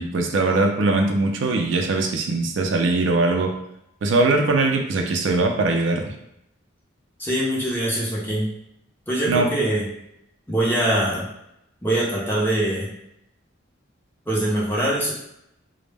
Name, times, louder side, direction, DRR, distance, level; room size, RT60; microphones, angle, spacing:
voice 1, 0.0-3.5 4.0-6.1 9.3-9.5, right 3 dB, 75° right, 3 dB, 0.4 m, -21 dB
voice 2, 7.2-8.5 9.1-9.8 10.5-11.3 11.8-12.9 14.3-15.1, right 1 dB, 10° left, -5 dB, 0.5 m, -23 dB
2.1 x 2.0 x 3.2 m, 0.80 s
head